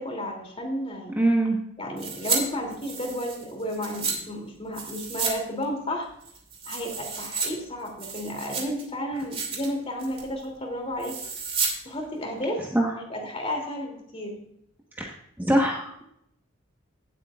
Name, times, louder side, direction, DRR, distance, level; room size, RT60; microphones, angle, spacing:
voice 1, 0.0-1.2 1.8-6.1 6.7-11.2 11.8-12.6 12.9-14.4, equal, 30° left, 2 dB, 2.9 m, -32 dB
voice 2, 1.2-1.6 12.7-12.9 15.0-16.1, right 1 dB, 10° right, -1 dB, 1.3 m, -23 dB
sound 1, 2.0-2.4 2.7-4.2 4.7-5.4 5.6-5.7 6.2-7.5 7.9-8.8 9.2-9.7 10.0-10.3 11.0-11.7 12.0-12.1, right 5 dB, 30° right, 2.5 m, -31 dB
17.5 x 8.3 x 2.5 m, 0.73 s
head